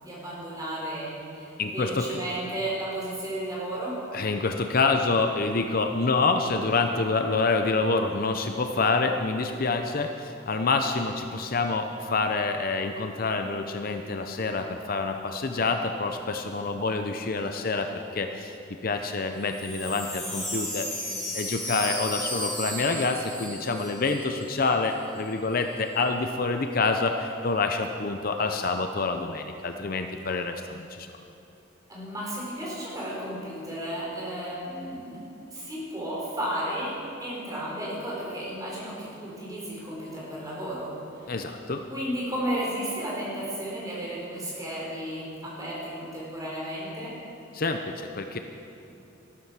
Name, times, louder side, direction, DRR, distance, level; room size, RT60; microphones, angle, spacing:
voice 1, 0.0-4.0 31.9-35.2 35.5-40.9 41.9-47.2, right 1 dB, 20° right, -5 dB, 3.9 m, -33 dB
voice 2, 1.6-2.1 4.1-18.6 18.8-20.9 21.3-31.1 41.3-41.9 47.5-48.4, left 3 dB, 45° left, 6 dB, 0.6 m, -27 dB
Wind chime, 19.4-24.6 24.8-24.9 25.2-25.6, left 1 dB, ahead, 3.5 m, -34 dB
13.0 x 12.5 x 5.9 m, 2.8 s
head